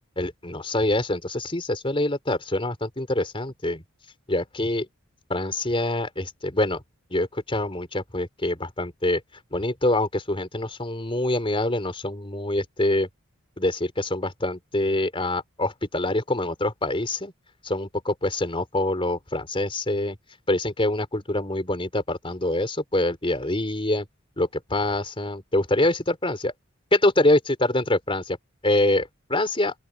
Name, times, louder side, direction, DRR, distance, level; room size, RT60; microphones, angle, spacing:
voice 1, 0.2-3.8 4.3-4.9 5.3-6.8 7.1-9.2 9.5-13.1 13.6-17.3 17.6-20.2 20.5-24.1 24.4-26.5 26.9-28.4 28.6-29.7, left 1 dB, 25° left, 4.0 m, -25 dB
open air
head